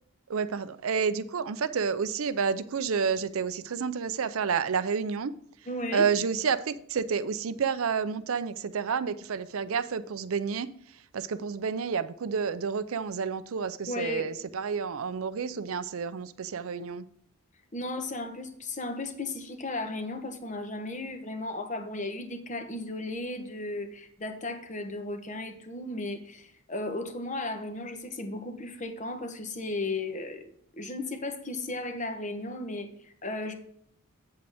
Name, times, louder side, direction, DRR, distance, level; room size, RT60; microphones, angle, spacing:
voice 1, 0.3-5.3 5.9-10.7 11.1-17.1, right 6 dB, 75° right, 14 dB, 0.5 m, -30 dB
voice 2, 5.7-6.1 13.9-14.3 17.7-30.4 30.7-33.5, left 2 dB, 35° left, 7 dB, 0.9 m, -35 dB
8.1 x 7.8 x 3.5 m, 0.68 s
head